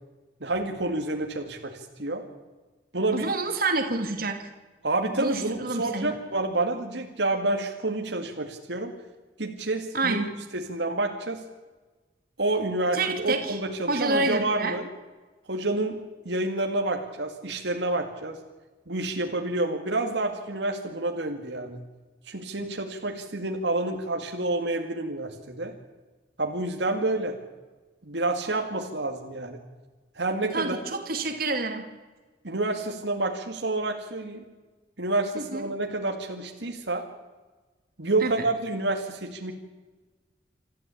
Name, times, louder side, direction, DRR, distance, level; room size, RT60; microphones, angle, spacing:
voice 1, 0.4-2.2 2.9-3.3 4.8-8.9 9.4-10.2 10.5-11.4 12.4-14.9 15.5-16.0 16.2-18.4 18.9-21.8 22.3-25.7 26.4-27.3 28.1-29.6 30.2-30.8 32.4-34.4 35.0-37.0 38.0-39.5, right 2 dB, 70° right, 3 dB, 2.3 m, -28 dB
voice 2, 3.1-4.5 5.1-6.1 9.9-10.3 12.9-13.6 13.9-14.8 30.5-31.8 35.4-35.6 38.2-38.4, right 3 dB, 55° right, 5 dB, 2.6 m, -28 dB
26.0 x 14.0 x 8.5 m, 1.3 s
head